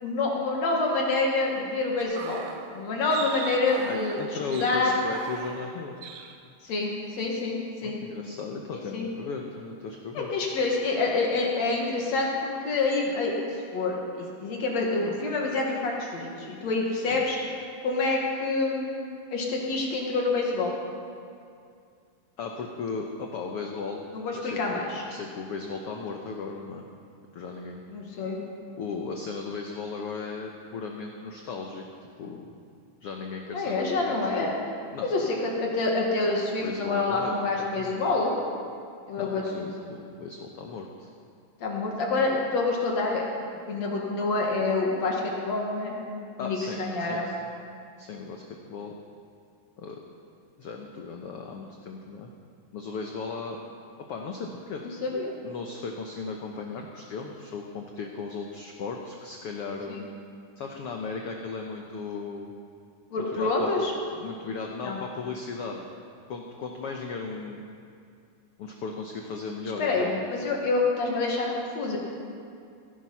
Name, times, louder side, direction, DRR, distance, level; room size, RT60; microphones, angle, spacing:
voice 1, 0.0-2.4 2.7-5.0 6.6-8.0 8.9-9.1 10.1-14.0 14.4-17.4 17.8-20.7 24.1-25.0 27.9-28.4 33.5-34.5 35.0-38.4 39.1-39.7 41.6-43.3 43.7-45.9 46.4-47.3 54.8-55.3 59.9-60.1 63.1-63.9 64.8-65.0 69.8-72.0, left 3 dB, 55° left, -1 dB, 2.7 m, -27 dB
sound 1, 2.0-5.8 6.0-6.4 6.7-6.9, right 7 dB, 80° right, 2.5 m, -40 dB
voice 2, 3.9-5.9 7.8-10.4 17.1-17.2 22.4-24.0 24.3-24.8 25.1-26.8 27.3-27.8 28.8-31.8 32.2-32.6 33.0-33.9 34.4-34.5 34.9-35.1 36.6-38.0 39.2-41.1 46.4-47.3 48.0-48.4 48.7-48.9 49.8-50.0 50.6-52.3 52.7-53.7 54.1-54.8 55.4-59.9 60.6-62.5 63.3-63.7 64.2-65.8 66.3-67.6 68.6-70.2, left 4 dB, 85° left, 1 dB, 1.3 m, -36 dB
17.0 x 11.5 x 5.7 m, 2.3 s
omnidirectional pair, 4.0 m